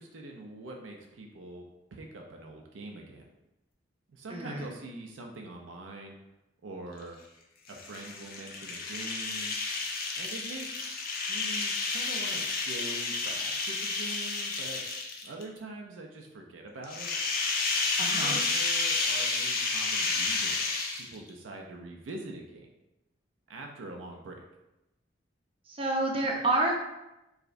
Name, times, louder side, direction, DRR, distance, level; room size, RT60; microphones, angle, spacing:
voice 1, 0.0-1.6 1.9-3.3 4.1-6.2 6.6-7.2 7.7-9.6 10.2-14.8 15.2-17.1 18.0-22.7 23.5-24.4, right 2 dB, 85° right, 1 dB, 0.4 m, -44 dB
voice 2, 4.3-4.7 18.0-18.4 25.7-26.7, right 2 dB, 30° right, 0 dB, 0.5 m, -28 dB
sound 1, 7.7-15.4 16.8-21.3, left 3 dB, 50° left, 0.5 m, -31 dB
4.7 x 2.1 x 2.5 m, 0.94 s
head